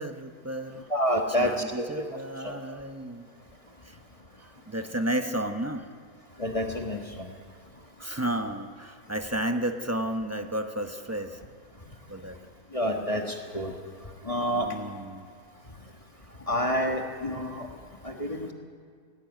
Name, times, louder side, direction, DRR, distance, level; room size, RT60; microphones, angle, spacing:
voice 1, 0.0-0.9 1.4-3.3 3.8-4.0 4.4-5.9 8.0-11.4 12.1-12.4 14.6-15.3, right 1 dB, 15° right, 6 dB, 0.5 m, -32 dB
voice 2, 0.9-2.0 6.4-7.3 12.7-13.7 14.2-14.7 16.5-17.7 18.0-18.5, equal, 20° left, 2 dB, 1.4 m, -28 dB
18.5 x 15.0 x 9.4 m, 2.1 s
omnidirectional pair, 1.8 m